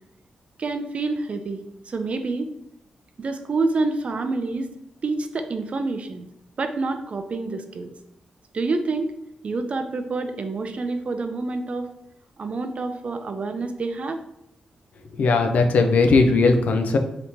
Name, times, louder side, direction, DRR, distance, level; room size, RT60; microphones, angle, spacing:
voice 1, 0.6-2.5 3.2-4.7 5.0-6.3 6.6-7.9 8.5-9.1 9.4-11.9 12.4-14.2, right 3 dB, 55° right, 7 dB, 0.4 m, -27 dB
voice 2, 15.1-17.0, left 3 dB, 75° left, 5 dB, 0.4 m, -18 dB
2.9 x 2.7 x 3.5 m, 0.80 s
supercardioid pair, 50°, 3 cm